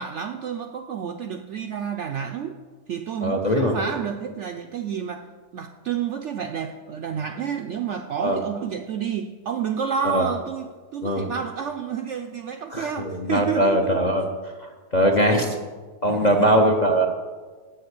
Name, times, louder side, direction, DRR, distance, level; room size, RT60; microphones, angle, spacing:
voice 1, 0.0-2.6 2.9-5.3 5.5-14.1 16.1-16.6, right 7 dB, 70° right, 6 dB, 0.7 m, -30 dB
voice 2, 3.2-3.8 8.2-8.4 10.0-10.3 11.0-11.3 12.7-14.3 14.6-15.6 16.0-17.1, equal, 40° left, 3 dB, 0.6 m, -21 dB
7.7 x 6.5 x 8.0 m, 1.4 s
omnidirectional pair, 1.7 m